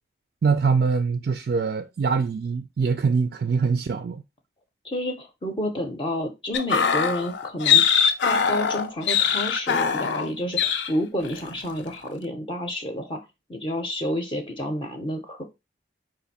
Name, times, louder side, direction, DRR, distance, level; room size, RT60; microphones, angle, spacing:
voice 1, 0.4-4.2, right 5 dB, 55° right, 0.3 m, -23 dB
voice 2, 4.8-7.8 8.2-13.2 13.5-15.4, left 1 dB, 25° left, 0.6 m, -29 dB
sound 1, 6.5-10.3 10.6-10.9 11.2-11.5, left 7 dB, 80° left, 0.5 m, -22 dB
5.0 x 2.6 x 4.0 m
head